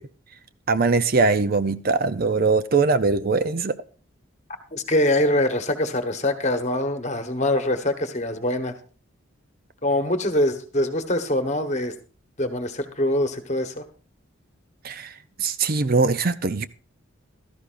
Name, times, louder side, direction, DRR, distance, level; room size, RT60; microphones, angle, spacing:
voice 1, 0.7-3.7 14.8-15.1 15.4-16.6, right 4 dB, 45° right, 0.5 m, -21 dB
voice 2, 4.7-8.8 9.8-11.9 12.4-13.8, left 1 dB, 35° left, 1.3 m, -24 dB
16.0 x 13.0 x 2.5 m
head